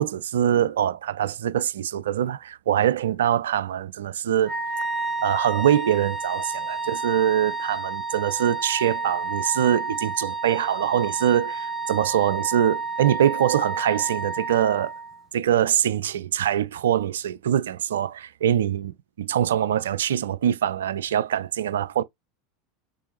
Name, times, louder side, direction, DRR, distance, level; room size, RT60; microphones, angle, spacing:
voice 1, 0.0-4.5 5.2-14.9 15.3-18.1 18.4-22.0, right 10 dB, 70° right, 0.4 m, -23 dB
Wind instrument woodwind instrument, 4.4-15.2, right 3 dB, 15° right, 1.1 m, -30 dB
6.7 x 2.6 x 3.0 m
figure-of-eight pair, 80°, 0 cm